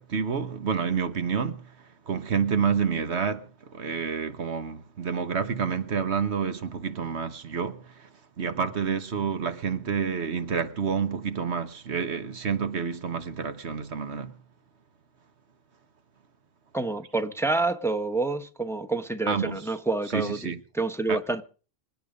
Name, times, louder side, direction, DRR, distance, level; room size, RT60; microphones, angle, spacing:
voice 1, 0.0-14.4 19.3-19.7 20.0-20.6 21.1-21.2, right 6 dB, 80° right, 1.5 m, -29 dB
voice 2, 16.7-21.4, right 3 dB, ahead, 1.1 m, -28 dB
26.0 x 8.7 x 5.1 m
omnidirectional pair, 1.1 m